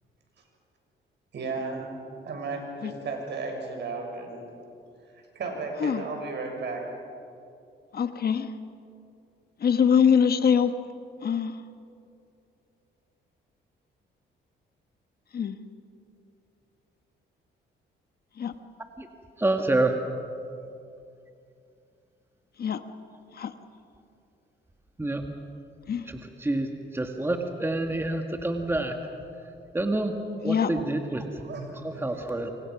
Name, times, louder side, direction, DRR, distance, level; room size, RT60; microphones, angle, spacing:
voice 1, 1.3-1.9 2.2-4.4 5.3-6.8 31.4-31.8, right 3 dB, 60° right, 2 dB, 6.7 m, -34 dB
voice 2, 7.9-8.5 9.6-10.7 11.2-11.5 15.3-15.6 18.4-18.5 22.6-22.8 23.4-23.5 25.9-26.0 30.4-30.7, left 7 dB, 50° left, 9 dB, 1.3 m, -23 dB
voice 3, 19.4-20.0 25.0-25.2 26.1-29.0 29.7-30.2 30.4-31.3 31.8-32.5, right 2 dB, 10° right, 4 dB, 1.9 m, -27 dB
28.0 x 25.0 x 6.1 m, 2.6 s
cardioid pair, 90°, 20 cm